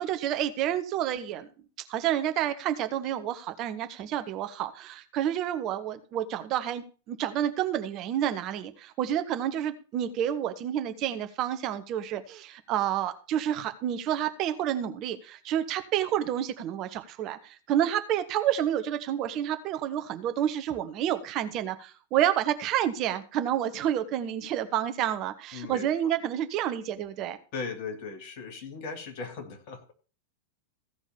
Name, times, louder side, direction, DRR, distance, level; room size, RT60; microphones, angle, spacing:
voice 1, 0.0-1.5 1.9-27.4, right 11 dB, 35° right, 9 dB, 1.0 m, -29 dB
voice 2, 25.5-25.9 27.5-29.9, left 4 dB, 45° left, 5 dB, 2.5 m, -38 dB
15.5 x 5.2 x 6.8 m, 0.36 s
figure-of-eight pair, 90°, 0 cm